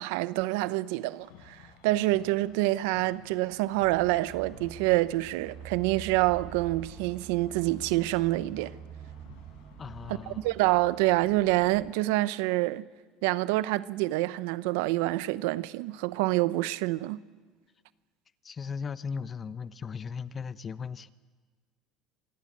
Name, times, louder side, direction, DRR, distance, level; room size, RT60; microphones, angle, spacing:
voice 1, 0.0-8.7 10.3-12.8 13.2-17.2, right 18 dB, 80° right, 0.8 m, -27 dB
sound 1, 1.2-10.6, left 7 dB, 80° left, 5.1 m, -54 dB
sound 2, 3.8-11.9, right 9 dB, 45° right, 1.5 m, -46 dB
voice 2, 9.8-10.5 18.4-21.1, left 6 dB, 35° left, 1.0 m, -37 dB
26.5 x 20.0 x 8.6 m
supercardioid pair, 90°, 0 cm